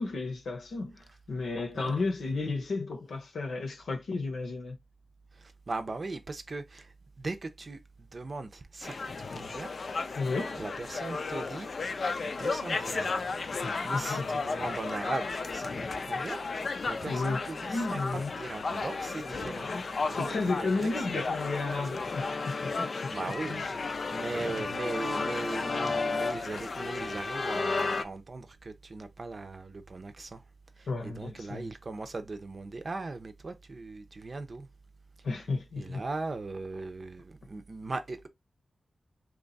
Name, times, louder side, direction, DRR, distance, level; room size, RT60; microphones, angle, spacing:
voice 1, 0.0-4.8 10.2-10.6 13.6-14.3 17.1-17.4 17.7-18.3 19.3-19.8 20.1-23.0 23.5-23.6 30.9-31.7 35.2-36.0, left 3 dB, 85° left, 0.9 m, -33 dB
voice 2, 5.4-9.7 10.5-13.2 13.5-16.4 16.8-19.7 20.0-21.3 21.7-22.2 23.1-30.4 30.8-34.7 35.8-38.3, right 3 dB, 50° right, 0.6 m, -39 dB
sound 1, 8.8-28.0, left 4 dB, 60° left, 0.4 m, -33 dB
3.0 x 2.4 x 4.0 m
cardioid pair, 70°, 0 cm